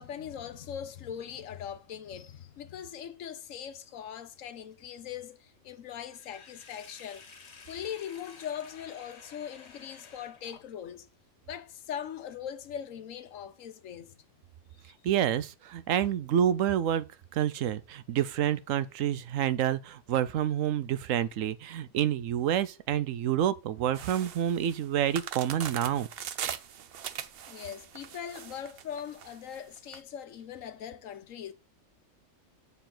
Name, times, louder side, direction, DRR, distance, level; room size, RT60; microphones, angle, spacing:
voice 1, 0.0-7.2 7.7-11.1 11.5-14.1 14.8-14.9 27.5-31.5, left 9 dB, 85° left, 1.2 m, -41 dB
Sink (filling or washing), 6.1-11.0, left 5 dB, 60° left, 1.4 m, -52 dB
voice 2, 15.0-17.0 17.3-26.1, right 10 dB, 80° right, 1.0 m, -28 dB
sound 1, 24.0-30.0, right 9 dB, 55° right, 0.7 m, -40 dB
6.9 x 6.9 x 3.8 m
omnidirectional pair, 1.3 m